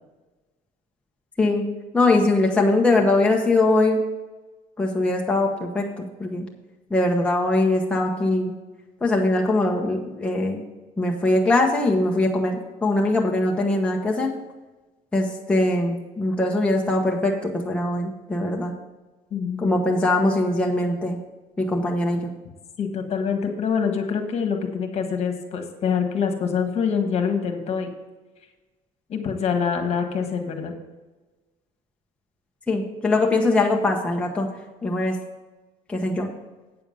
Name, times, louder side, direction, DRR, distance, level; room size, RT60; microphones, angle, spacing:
voice 1, 1.9-4.0 4.8-6.5 6.9-8.5 9.0-10.6 11.0-14.4 15.1-18.7 19.6-21.2 21.6-22.3 32.7-34.5 34.8-35.2 35.9-36.3, left 2 dB, 5° left, 0 dB, 1.0 m, -22 dB
voice 2, 19.3-19.8 22.8-27.9 29.1-30.7, left 6 dB, 45° left, 5 dB, 1.5 m, -25 dB
8.7 x 6.9 x 5.4 m, 1.2 s
cardioid pair, 125°, 15 cm